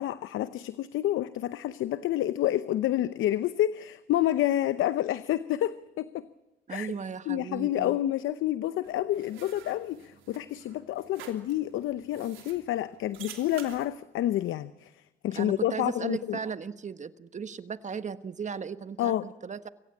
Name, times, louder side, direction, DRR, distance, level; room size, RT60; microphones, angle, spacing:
voice 1, 0.0-6.3 6.7-6.9 7.3-14.9 15.2-16.4 19.0-19.2, left 13 dB, 80° left, 14 dB, 0.8 m, -29 dB
voice 2, 6.7-8.0 15.3-19.7, right 6 dB, 35° right, 12 dB, 1.3 m, -36 dB
sound 1, 8.8-13.9, right 9 dB, 90° right, 3.0 m, -49 dB
25.5 x 16.0 x 8.5 m, 1.1 s
cardioid pair, 90°, 20 cm